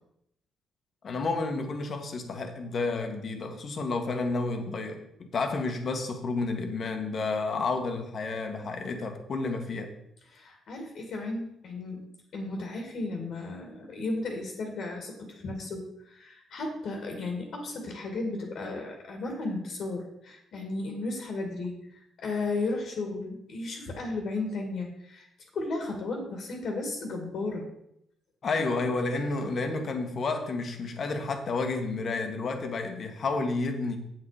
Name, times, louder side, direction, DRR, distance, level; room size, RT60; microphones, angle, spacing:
voice 1, 1.0-9.9 28.4-34.0, left 3 dB, 50° left, 5 dB, 1.6 m, -31 dB
voice 2, 10.3-12.1 12.3-25.3 25.5-27.7, left 2 dB, 65° left, 2 dB, 2.2 m, -34 dB
8.1 x 7.8 x 5.0 m, 0.77 s
cardioid pair, 90°, 0 cm